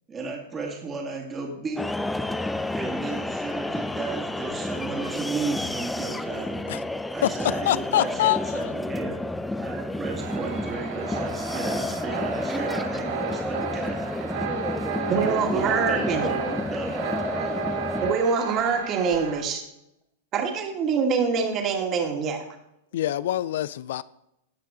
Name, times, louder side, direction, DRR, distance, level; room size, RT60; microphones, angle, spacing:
voice 1, 0.1-1.8 2.1-2.5 2.7-6.6 7.1-9.2 9.6-14.6 15.1-17.1 17.4-17.5 17.9-18.0, right 4 dB, 20° right, 2.2 m, -34 dB
sound 1, 1.8-18.1, left 2 dB, 5° left, 0.6 m, -30 dB
voice 2, 7.7-8.6 22.9-24.0, left 13 dB, 65° left, 0.4 m, -24 dB
sound 2, 10.2-19.4, right 6 dB, 65° right, 2.7 m, -33 dB
voice 3, 15.1-16.3 18.0-19.6 20.3-22.4, right 5 dB, 35° right, 2.4 m, -24 dB
17.0 x 5.9 x 3.9 m
hypercardioid pair, 110°, 0 cm